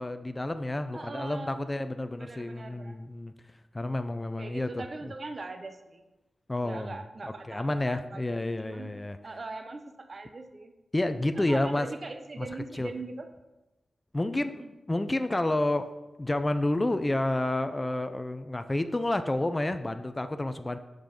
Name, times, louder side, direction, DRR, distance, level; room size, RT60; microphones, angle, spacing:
voice 1, 0.0-3.3 3.7-5.1 6.5-7.0 7.5-9.2 10.9-11.9 12.4-12.5 12.7-12.9 14.1-14.5 14.9-15.9 16.2-20.8, left 1 dB, 20° left, 9 dB, 0.5 m, -30 dB
voice 2, 0.9-1.7 2.2-3.0 4.4-6.0 6.6-9.0 9.2-10.7 11.4-13.3 14.3-14.7, right 3 dB, 45° right, 7 dB, 0.7 m, -41 dB
6.6 x 5.8 x 5.2 m, 1.0 s
cardioid pair, 70°, 0 cm